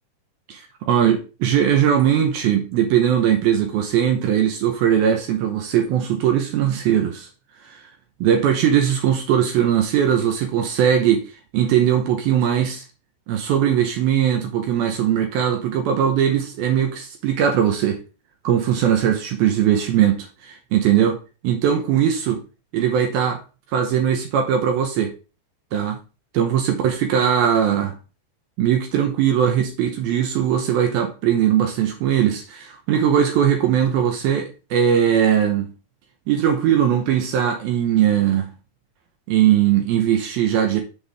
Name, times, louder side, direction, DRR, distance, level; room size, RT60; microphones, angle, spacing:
voice 1, 0.5-7.3 7.6-7.8 8.2-11.2 11.5-12.9 13.3-18.0 18.4-22.4 22.7-23.4 23.7-25.1 25.7-26.0 26.3-28.0 28.6-35.7 36.3-38.5 39.3-40.8, right 9 dB, 75° right, 2.4 m, -20 dB
7.3 x 6.0 x 3.4 m
omnidirectional pair, 5.0 m